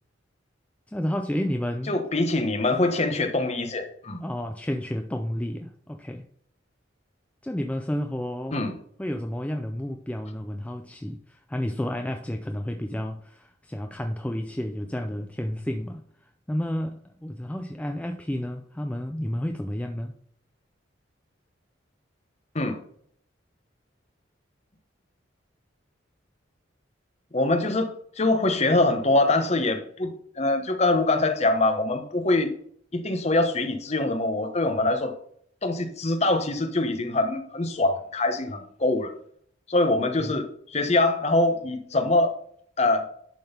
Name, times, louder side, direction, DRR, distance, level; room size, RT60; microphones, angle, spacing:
voice 1, 0.9-1.9 4.2-6.3 7.4-8.6 9.0-16.0 16.5-20.1 40.2-40.4, equal, 5° left, 0.4 m, -31 dB
voice 2, 1.9-4.2 8.5-8.7 22.5-22.8 27.3-32.5 32.9-35.1 35.6-39.1 39.7-42.3 42.8-43.1, left 2 dB, 35° left, 1.1 m, -24 dB
11.0 x 3.9 x 5.3 m
head